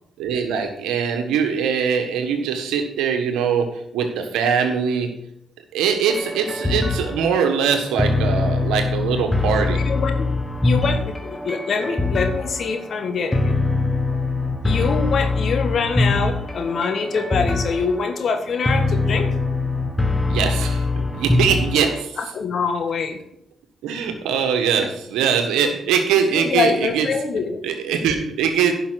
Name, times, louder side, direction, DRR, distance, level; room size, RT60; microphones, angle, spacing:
voice 1, 0.2-5.1 5.7-9.8 20.3-22.2 23.8-27.1 27.6-28.7, right 7 dB, 80° right, 5 dB, 1.4 m, -22 dB
sound 1, 6.1-22.0, left 3 dB, 20° left, 1.5 m, -23 dB
voice 2, 9.7-10.3 10.6-13.6 14.6-19.3 22.2-23.2 24.8-24.9 26.3-27.6, left 5 dB, 60° left, 6 dB, 1.6 m, -24 dB
10.5 x 5.9 x 5.9 m, 0.73 s
hypercardioid pair, 45°, 0 cm